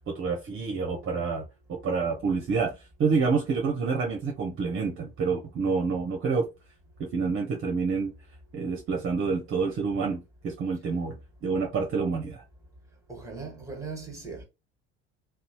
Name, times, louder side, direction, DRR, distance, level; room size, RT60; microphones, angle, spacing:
voice 1, 0.1-1.4 1.7-6.5 7.0-8.1 8.5-12.4, right 5 dB, 40° right, 0.7 m, -28 dB
voice 2, 13.1-14.4, right 4 dB, 10° right, 1.4 m, -39 dB
2.6 x 2.1 x 2.9 m
hypercardioid pair, 70°, 31 cm